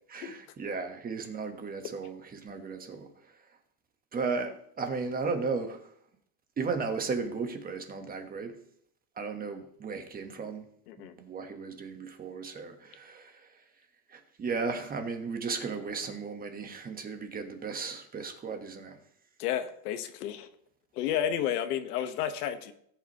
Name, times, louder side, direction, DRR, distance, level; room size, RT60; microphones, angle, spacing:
voice 1, 0.1-3.1 4.1-5.8 6.6-8.6 9.2-10.7 11.0-13.5 14.1-19.0, right 4 dB, 20° right, 5 dB, 1.3 m, -35 dB
voice 2, 19.4-20.5 20.9-22.7, left 10 dB, 90° left, 8 dB, 1.4 m, -31 dB
18.0 x 8.2 x 3.0 m, 0.69 s
supercardioid pair, 150°, 44 cm